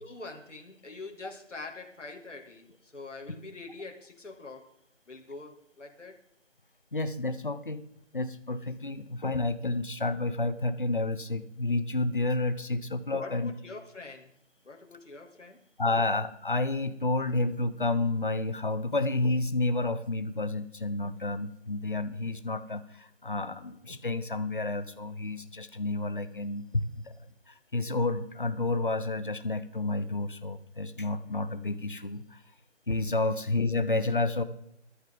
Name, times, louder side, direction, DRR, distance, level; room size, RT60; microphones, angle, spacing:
voice 1, 0.0-4.7 5.1-6.2 13.2-14.3 14.6-15.6, left 3 dB, 85° left, 2 dB, 2.6 m, -44 dB
voice 2, 6.9-7.8 8.1-13.5 15.8-27.1 27.5-32.4 32.9-34.4, left 2 dB, 45° left, 11 dB, 0.8 m, -30 dB
14.5 x 11.0 x 3.9 m, 0.75 s
figure-of-eight pair, 180°, 36 cm